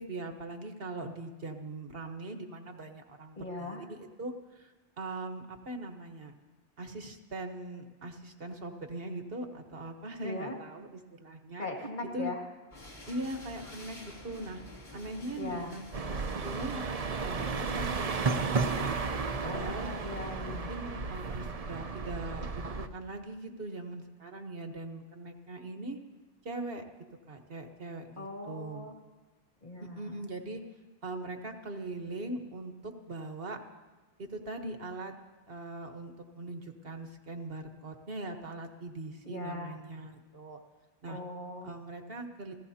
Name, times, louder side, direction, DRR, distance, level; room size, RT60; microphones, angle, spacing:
voice 1, 0.0-6.3 6.8-11.7 12.0-12.3 13.1-14.6 14.9-17.9 18.3-19.0 19.4-19.9 20.5-26.0 26.4-26.8 27.3-28.8 29.8-30.6 31.0-33.6 34.2-35.1 35.5-40.6 41.0-41.2 41.6-42.5, right 2 dB, 65° right, 5 dB, 1.5 m, -41 dB
voice 2, 3.4-3.8 10.2-10.6 11.6-12.4 15.4-15.7 19.4-20.7 28.2-28.9 29.6-30.3 39.2-39.8 41.1-41.7, left 2 dB, 50° left, 0 dB, 2.4 m, -39 dB
sound 1, 12.7-20.3, left 1 dB, 75° left, 3.5 m, -50 dB
sound 2, 15.9-22.9, right 4 dB, 40° right, 0.7 m, -33 dB
28.5 x 16.0 x 2.8 m, 1.3 s
omnidirectional pair, 1.0 m